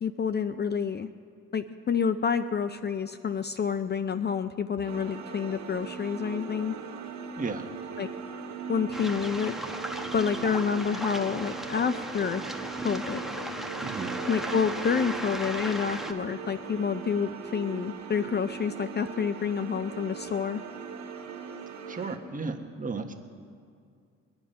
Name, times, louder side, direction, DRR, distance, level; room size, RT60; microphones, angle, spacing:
voice 1, 0.0-1.1 1.5-6.8 8.0-8.1 8.7-9.5 10.1-12.4 12.8-13.2 14.3-20.6, left 6 dB, 35° left, 12 dB, 0.5 m, -28 dB
sound 1, 4.8-22.2, right 5 dB, 65° right, 1.9 m, -39 dB
Waves surf, 8.9-16.1, right 1 dB, ahead, 1.1 m, -37 dB
voice 2, 21.9-23.0, right 4 dB, 25° right, 3 dB, 1.3 m, -34 dB
23.0 x 9.5 x 5.6 m, 2.2 s
cardioid pair, 90°, 30 cm